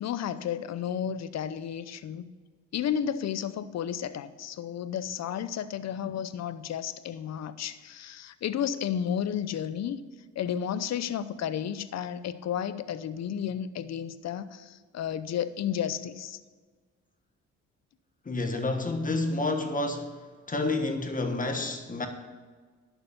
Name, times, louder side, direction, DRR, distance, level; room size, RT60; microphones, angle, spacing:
voice 1, 0.0-2.2 2.7-10.0 10.4-16.4, left 9 dB, 60° left, 14 dB, 0.7 m, -32 dB
voice 2, 18.2-20.2 20.5-22.1, left 2 dB, 25° left, 6 dB, 1.4 m, -29 dB
11.0 x 7.2 x 7.0 m, 1.4 s
cardioid pair, 90°, 30 cm